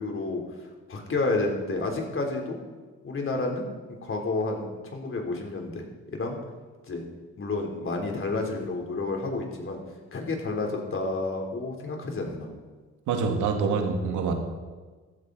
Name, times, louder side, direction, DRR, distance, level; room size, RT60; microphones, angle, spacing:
voice 1, 0.0-2.6 3.0-3.7 4.0-5.9 6.1-6.4 6.9-7.0 7.4-9.8 10.1-12.5, left 3 dB, 45° left, 1 dB, 3.6 m, -30 dB
voice 2, 13.1-14.3, right 5 dB, 80° right, 4 dB, 2.1 m, -25 dB
15.0 x 13.5 x 4.1 m, 1.4 s
cardioid pair, 90°, 30 cm